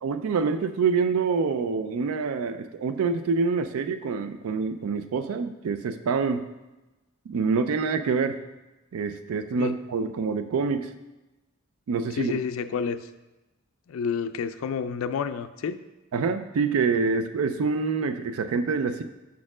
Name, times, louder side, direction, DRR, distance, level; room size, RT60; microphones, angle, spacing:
voice 1, 0.0-6.5 7.3-8.4 8.9-10.9 11.9-12.4 16.1-19.0, right 5 dB, 90° right, 10 dB, 0.4 m, -26 dB
voice 2, 12.2-13.1 13.9-15.8, left 6 dB, 75° left, 9 dB, 0.3 m, -29 dB
5.7 x 4.3 x 6.0 m, 1.1 s
head